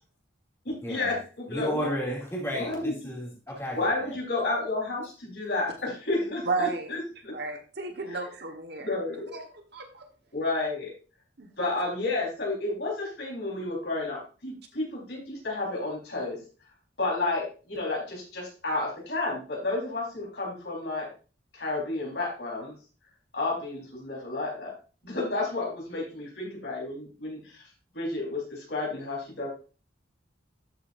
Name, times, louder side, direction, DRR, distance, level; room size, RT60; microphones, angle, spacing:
voice 1, 0.6-2.0 2.5-2.9 3.7-7.3 8.8-9.4 10.3-10.9 11.6-16.4 17.0-21.1 21.5-22.7 23.3-24.7 25.0-27.6 27.9-29.5, left 2 dB, 60° left, -2 dB, 4.4 m, -31 dB
voice 2, 1.5-4.1, equal, 15° left, -3 dB, 2.7 m, -33 dB
voice 3, 6.4-6.9 7.3-8.9 9.3-10.0 11.4-11.5, right 3 dB, 55° right, 4 dB, 1.4 m, -33 dB
12.5 x 6.9 x 2.7 m, 0.35 s
head